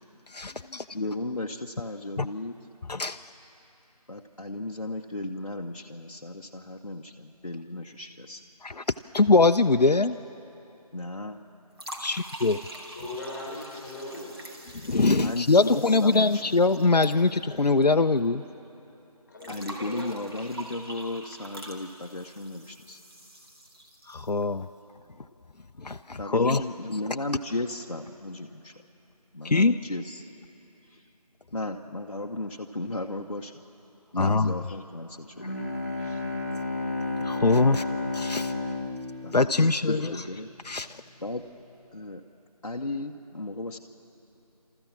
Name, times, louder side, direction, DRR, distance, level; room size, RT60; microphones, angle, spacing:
voice 1, 0.3-0.8 2.2-2.3 2.9-3.2 8.6-8.8 9.1-10.2 12.0-12.6 14.8-18.4 24.1-24.7 25.8-26.6 29.4-29.8 34.2-34.5 37.2-37.8 38.1-38.5 39.3-40.0 40.6-40.9, left 3 dB, 90° left, 8 dB, 0.6 m, -22 dB
voice 2, 0.9-2.5 4.1-8.4 10.9-11.3 15.0-16.6 19.5-23.0 26.2-28.7 29.3-30.2 30.9-31.0 31.5-33.5 34.1-35.5 36.0-36.2 39.2-40.5 41.2-41.5 41.9-42.2 42.6-43.8, left 2 dB, 55° left, 0 dB, 0.9 m, -35 dB
sound 1, 11.7-17.9 18.2-18.3 19.4-24.4, right 1 dB, 40° right, 2.2 m, -45 dB
voice 3, 12.9-14.3 19.3-20.1, left 1 dB, ahead, -5 dB, 3.2 m, -39 dB
Bowed string instrument, 35.4-40.4, left 2 dB, 25° left, 0.9 m, -32 dB
29.5 x 14.0 x 7.3 m, 3.0 s
figure-of-eight pair, 170°, 20 cm